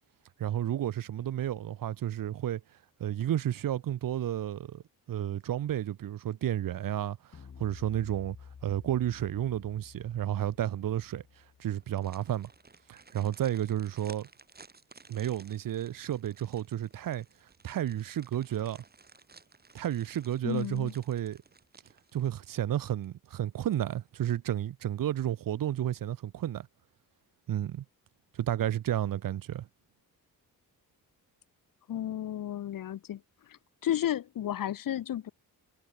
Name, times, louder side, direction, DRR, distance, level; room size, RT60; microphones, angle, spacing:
voice 1, 0.4-2.6 3.0-4.8 5.1-8.4 8.6-11.2 11.6-12.5 12.9-14.3 15.1-17.3 17.6-18.8 19.7-21.4 22.1-26.7 27.5-27.8 28.3-29.7, right 11 dB, 65° right, 1.1 m, -32 dB
sound 1, 7.3-12.7, left 6 dB, 40° left, 2.7 m, -52 dB
sound 2, 11.7-22.7 23.0-23.1 23.6-24.2 24.6-24.7, right 4 dB, 25° right, 7.0 m, -56 dB
voice 2, 20.4-20.9 31.9-33.2 33.5-35.3, left 11 dB, 65° left, 1.2 m, -33 dB
wide cardioid pair, 150°, 37 cm